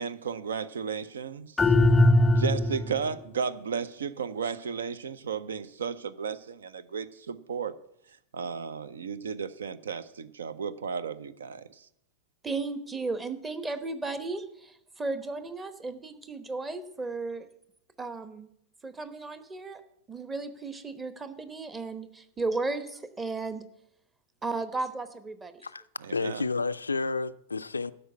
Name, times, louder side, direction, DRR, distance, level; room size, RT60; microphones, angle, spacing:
voice 1, 0.0-1.6 2.3-7.7 8.3-11.9 26.0-26.4, right 6 dB, 65° right, 0.5 m, -34 dB
sound 1, 1.6-3.0, left 1 dB, 10° left, 0.4 m, -20 dB
voice 2, 12.4-17.5 18.0-18.5 18.8-19.8 20.1-23.7 24.4-25.5, right 3 dB, 15° right, 0.9 m, -34 dB
voice 3, 26.1-27.9, left 4 dB, 80° left, 0.3 m, -30 dB
12.5 x 5.3 x 7.9 m
figure-of-eight pair, 90°, 0 cm